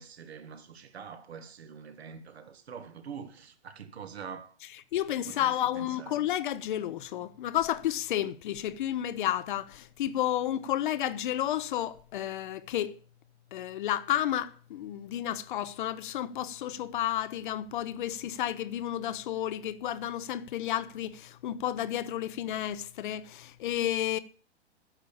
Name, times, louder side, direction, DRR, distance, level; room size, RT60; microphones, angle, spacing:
voice 1, 0.0-4.5 5.2-6.1, right 6 dB, 65° right, 1.8 m, -45 dB
voice 2, 4.9-13.0 13.5-24.2, left 12 dB, 45° left, 0.8 m, -31 dB
9.9 x 6.9 x 8.6 m
figure-of-eight pair, 110°, 34 cm